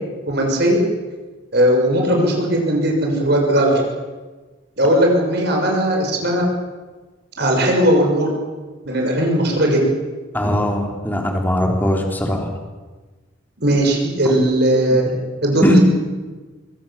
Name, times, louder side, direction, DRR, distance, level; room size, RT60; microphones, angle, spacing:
voice 1, 0.3-0.8 1.5-3.8 4.8-6.4 7.4-8.3 8.8-9.8 13.6-15.0 15.4-15.8, right 1 dB, 55° right, 0 dB, 6.2 m, -17 dB
voice 2, 10.3-12.5 15.6-15.8, equal, 10° left, 2 dB, 3.4 m, -19 dB
25.0 x 24.0 x 7.3 m, 1.3 s
head